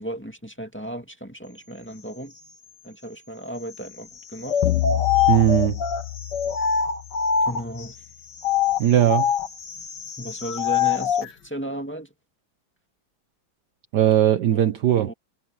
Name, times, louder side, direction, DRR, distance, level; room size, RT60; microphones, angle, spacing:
voice 1, 0.0-2.3 2.8-4.6 7.4-8.0 10.2-12.1 14.4-15.1, right 1 dB, 5° left, 2.1 m, -35 dB
sound 1, 4.4-7.8 8.4-11.3, left 7 dB, 60° left, 2.2 m, -24 dB
sound 2, 4.6-7.4, left 17 dB, 85° left, 1.4 m, -28 dB
voice 2, 5.3-5.8 8.8-9.3 13.9-15.1, right 11 dB, 65° right, 1.3 m, -19 dB
omnidirectional pair, 2.1 m